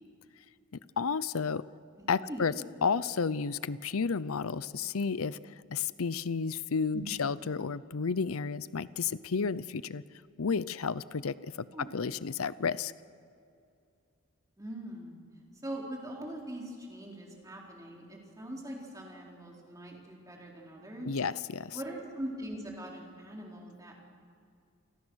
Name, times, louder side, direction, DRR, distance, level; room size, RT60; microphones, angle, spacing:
voice 1, 1.0-1.6 2.1-2.5 2.8-10.0 10.4-11.7 11.9-12.9 21.0-21.8, left 5 dB, 85° left, 17 dB, 0.7 m, -32 dB
voice 2, 2.0-2.4 6.9-7.0 11.7-11.9 14.6-15.2 15.6-21.2 21.7-24.0, right 1 dB, 15° right, -1 dB, 4.1 m, -42 dB
29.5 x 23.5 x 6.4 m, 2.5 s
head